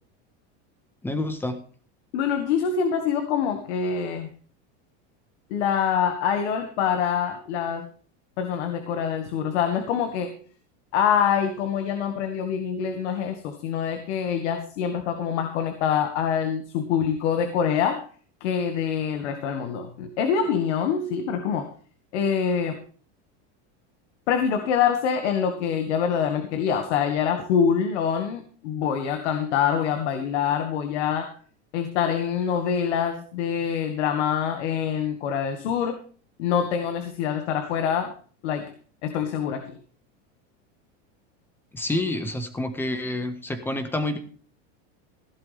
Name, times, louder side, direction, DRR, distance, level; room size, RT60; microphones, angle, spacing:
voice 1, 1.0-1.6 41.7-44.2, left 1 dB, 5° left, 8 dB, 1.4 m, -28 dB
voice 2, 2.1-4.3 5.5-7.9 8.4-10.3 10.9-18.0 18.4-21.7 22.1-22.8 24.3-31.3 31.7-36.0 36.4-38.1 38.4-38.7 39.0-39.7, left 7 dB, 80° left, 6 dB, 2.0 m, -25 dB
16.0 x 11.5 x 3.5 m, 0.43 s
supercardioid pair, 170°, 35 cm